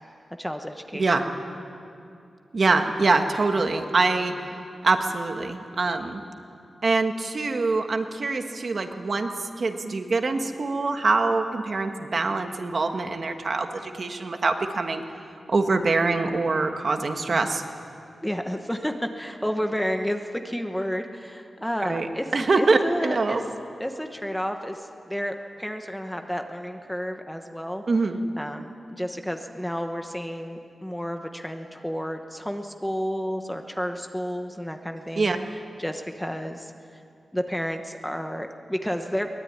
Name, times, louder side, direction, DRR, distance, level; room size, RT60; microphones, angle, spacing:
voice 1, 0.4-1.3 17.3-17.4 18.2-22.3 22.5-23.4 23.8-27.8 28.4-35.3 35.8-37.0 37.3-39.3, equal, 5° left, 5 dB, 1.1 m, -31 dB
voice 2, 2.5-4.3 4.8-6.2 6.8-9.3 9.6-15.0 15.5-17.6 21.8-22.1 22.3-23.4 27.9-28.2 35.2-35.4, right 3 dB, 45° right, 5 dB, 1.6 m, -24 dB
23.0 x 19.5 x 9.6 m, 2.6 s
wide cardioid pair, 155°, 0 cm